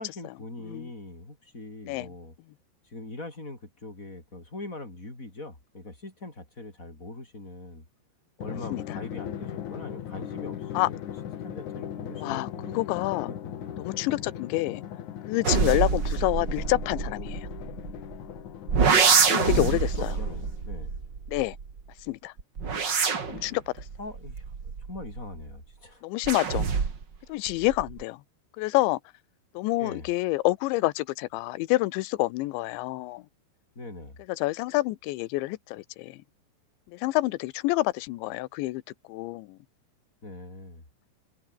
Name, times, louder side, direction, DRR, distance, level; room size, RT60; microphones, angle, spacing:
voice 1, 0.0-2.3 2.8-7.8 8.4-11.0 11.4-14.3 19.3-21.0 24.0-26.0 29.8-30.1 33.7-34.2 40.2-40.8, left 2 dB, 15° left, 6.1 m, -41 dB
Drum, 8.4-20.8, left 10 dB, 60° left, 2.3 m, -39 dB
voice 2, 12.2-12.5 12.7-13.3 13.8-14.8 15.3-17.5 19.3-20.1 21.3-21.6 22.1-22.3 23.3-23.9 26.0-26.7 27.3-28.2 28.6-29.0 29.5-33.2 34.4-36.2 36.9-38.8 39.1-39.6, left 19 dB, 85° left, 3.2 m, -27 dB
sound 1, 15.4-18.2 18.7-21.8 22.4-25.4 26.2-27.2 27.5-28.0, right 5 dB, 35° right, 2.0 m, -26 dB
omnidirectional pair, 5.2 m